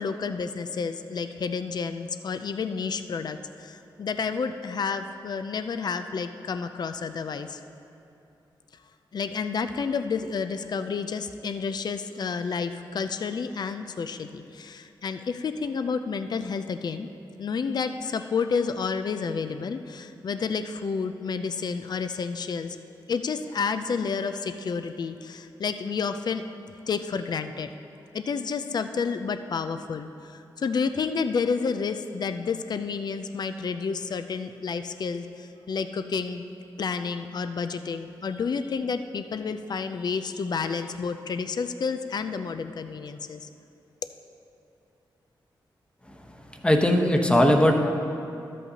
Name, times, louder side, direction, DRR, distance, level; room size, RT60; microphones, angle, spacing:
voice 1, 0.0-7.6 9.1-17.1 17.4-22.8 23.1-26.4 26.9-27.7 28.1-36.4 36.8-43.5, left 5 dB, 55° left, 9 dB, 0.4 m, -30 dB
voice 2, 46.6-47.7, left 1 dB, 10° left, 3 dB, 1.0 m, -19 dB
13.0 x 8.3 x 2.8 m, 2.7 s
cardioid pair, 60°, 9 cm